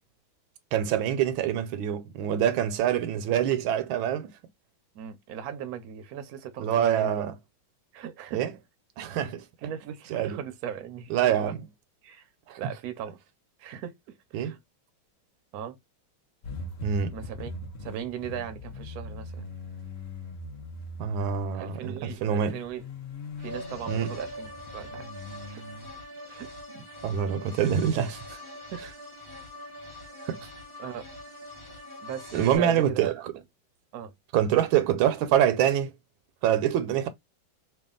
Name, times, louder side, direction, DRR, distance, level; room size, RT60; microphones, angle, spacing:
voice 1, 0.7-4.3 6.6-7.3 8.3-8.5 9.0-9.4 10.1-10.4 11.1-11.6 12.5-12.6 14.3-14.5 16.8-17.1 21.0-22.6 23.9-24.1 27.0-28.4 30.3-30.4 32.3-33.1 34.3-35.9 36.4-37.1, right 9 dB, 80° right, 1.4 m, -25 dB
voice 2, 4.9-7.3 7.9-8.4 9.2-9.3 9.6-11.6 12.0-12.3 12.6-13.2 13.6-14.6 15.5-15.8 17.1-17.5 17.8-19.5 21.5-22.8 23.4-25.1 25.5-25.7 26.3-26.5 28.7-28.8 30.8-31.1 32.0-33.2 33.9-34.1, right 9 dB, 65° right, 1.0 m, -38 dB
sound 1, 16.4-25.9, left 2 dB, 65° left, 0.6 m, -41 dB
sound 2, 23.4-32.6, equal, 20° left, 0.6 m, -43 dB
3.3 x 2.4 x 3.6 m
omnidirectional pair, 2.2 m